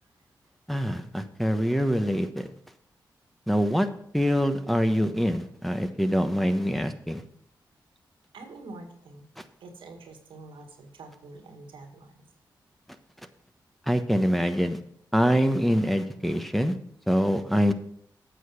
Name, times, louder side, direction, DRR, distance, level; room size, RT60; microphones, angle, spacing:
voice 1, 0.7-2.5 3.5-3.9 4.1-7.2 13.9-14.8 15.1-16.7 17.1-17.7, equal, ahead, 6 dB, 1.2 m, -24 dB
voice 2, 8.3-9.3 9.6-12.3, right 2 dB, 90° right, 4 dB, 1.7 m, -46 dB
9.1 x 6.8 x 5.9 m, 0.67 s
supercardioid pair, 45°, 8 cm